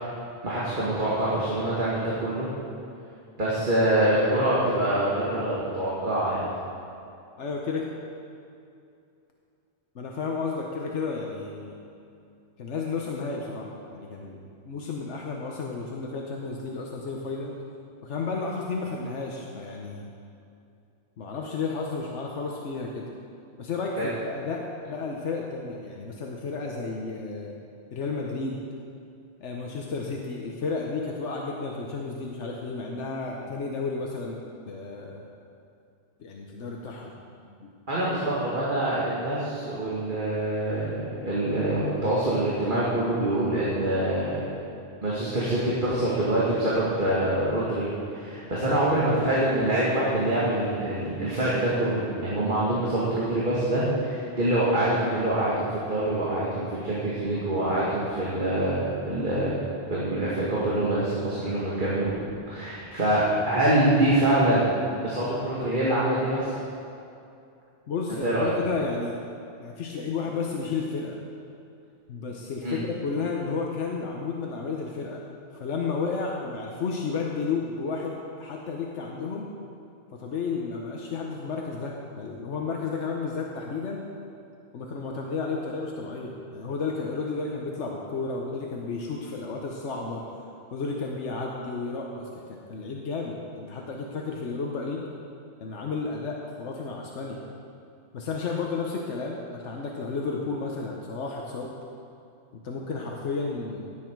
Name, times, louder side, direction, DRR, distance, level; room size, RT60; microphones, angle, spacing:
voice 1, 0.4-2.5 3.4-6.4 24.0-24.1 37.9-44.5 45.0-59.5 59.9-62.1 62.5-64.7 65.0-66.5 68.2-68.5 72.6-72.8, right 1 dB, 45° right, -8 dB, 2.2 m, -25 dB
voice 2, 7.4-7.8 9.9-11.8 12.6-17.6 18.0-20.1 21.2-23.1 23.6-27.6 27.9-28.7 29.4-35.3 36.2-37.1 37.6-37.7 67.9-69.2 69.6-71.2 72.1-75.2 75.6-79.5 80.1-84.0 84.7-90.3 90.7-95.1 95.6-97.4 98.1-101.7 102.5-103.9, left 4 dB, 90° left, -1 dB, 1.3 m, -32 dB
17.0 x 8.7 x 4.6 m, 2.6 s
omnidirectional pair, 1.2 m